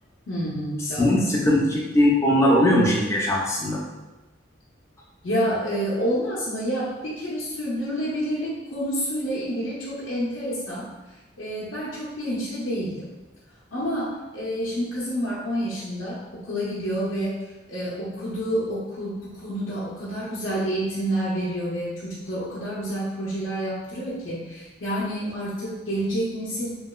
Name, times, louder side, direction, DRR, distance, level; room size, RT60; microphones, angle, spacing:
voice 1, 0.3-1.2 5.2-10.9 11.4-13.0 13.7-17.4 17.7-26.8, equal, 80° left, -9 dB, 0.7 m, -28 dB
voice 2, 1.0-3.8, left 1 dB, 15° left, -4 dB, 0.5 m, -20 dB
3.0 x 2.8 x 2.2 m, 1.1 s
head